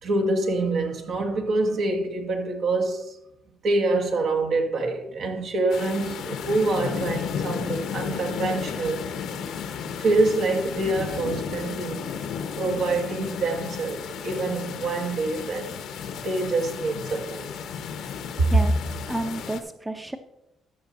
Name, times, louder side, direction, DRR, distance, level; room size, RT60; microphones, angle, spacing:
voice 1, 0.0-3.2 3.6-9.1 10.0-12.1 12.6-15.8 16.2-17.5 18.4-18.5, right 2 dB, 70° right, 1.6 m, -26 dB
sound 1, 5.7-19.6, left 7 dB, 85° left, 1.0 m, -33 dB
voice 2, 18.4-18.7 19.1-20.2, right 1 dB, 15° right, 0.7 m, -31 dB
13.5 x 5.7 x 4.2 m
cardioid pair, 90°, 0 cm